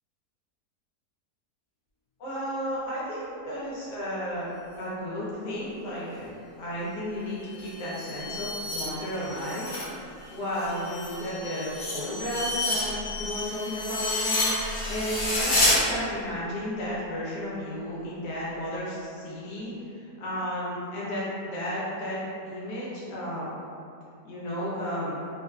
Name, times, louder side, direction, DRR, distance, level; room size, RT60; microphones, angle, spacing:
voice 1, 2.2-4.5 4.8-9.7 10.3-23.5 24.2-25.2, equal, 90° left, -8 dB, 1.4 m, -33 dB
sound 1, 7.5-9.9 10.2-15.8, left 2 dB, 50° left, 0.8 m, -30 dB
3.4 x 2.4 x 2.2 m, 2.6 s
omnidirectional pair, 1.7 m